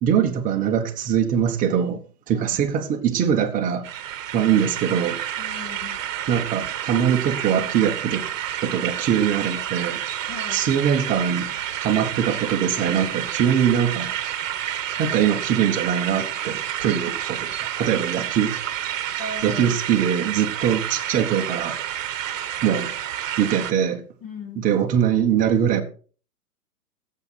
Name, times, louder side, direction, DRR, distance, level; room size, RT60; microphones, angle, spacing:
voice 1, 0.0-3.9 4.3-5.2 6.3-8.2 8.6-10.0 10.5-14.1 15.0-17.4 17.8-18.6 19.4-21.8 22.6-22.9 23.4-24.0 24.6-25.8, right 8 dB, 15° right, 1.1 m, -22 dB
sound 1, 3.8-23.7, right 11 dB, 55° right, 1.2 m, -29 dB
voice 2, 5.4-6.0 10.3-10.6 19.2-19.8 24.2-24.7, left 3 dB, 30° left, 3.4 m, -37 dB
16.5 x 7.5 x 4.2 m
hypercardioid pair, 145°, 46 cm